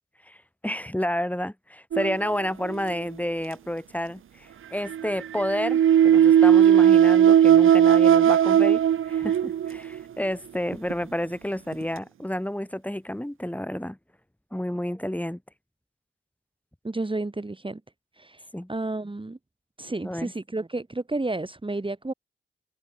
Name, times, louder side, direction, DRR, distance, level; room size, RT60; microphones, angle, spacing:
voice 1, 0.6-8.8 9.1-14.0 14.5-15.4 18.5-18.7 20.0-20.3, left 1 dB, 5° left, 5.5 m, -30 dB
sound 1, 1.9-2.9 4.9-10.0 10.7-10.9 11.7-11.8, right 9 dB, 75° right, 0.5 m, -18 dB
voice 2, 16.8-17.8 18.2-19.4 19.8-22.1, right 2 dB, 25° right, 3.2 m, -31 dB
cardioid pair, 70°, 21 cm